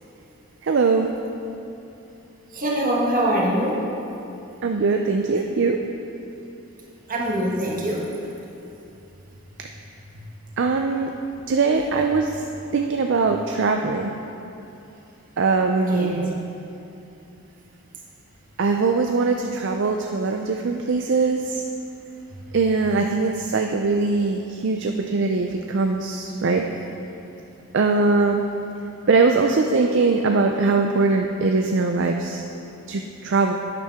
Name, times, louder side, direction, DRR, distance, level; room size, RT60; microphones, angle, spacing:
voice 1, 0.6-1.1 4.6-5.8 10.6-11.1 11.5-12.4 12.7-14.1 15.4-16.3 18.6-21.6 22.5-26.7 27.7-28.4 29.1-32.4 32.9-33.5, right 4 dB, 55° right, 3 dB, 0.5 m, -21 dB
voice 2, 2.5-3.9 5.3-5.5 7.1-8.1 10.1-10.2 15.7-16.2, right 1 dB, 40° right, -3 dB, 1.5 m, -24 dB
11.0 x 9.4 x 3.6 m, 2.8 s
head